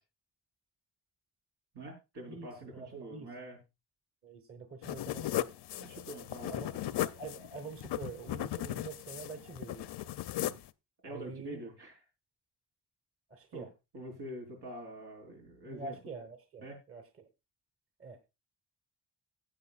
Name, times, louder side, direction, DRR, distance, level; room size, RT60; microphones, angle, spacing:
voice 1, 1.7-3.6 5.8-6.9 10.4-10.6 11.0-12.0 13.5-13.7 13.9-16.0 16.6-16.8, right 1 dB, 90° right, 1 dB, 4.2 m, -45 dB
voice 2, 2.7-3.3 4.2-5.5 6.5-9.9 11.1-11.7 13.3-13.7 15.6-17.3 18.0-18.3, right 4 dB, 35° right, 7 dB, 1.3 m, -46 dB
sound 1, 4.8-10.7, left 13 dB, 85° left, 0.6 m, -37 dB
16.5 x 7.9 x 2.3 m, 0.24 s
wide cardioid pair, 130°, 39 cm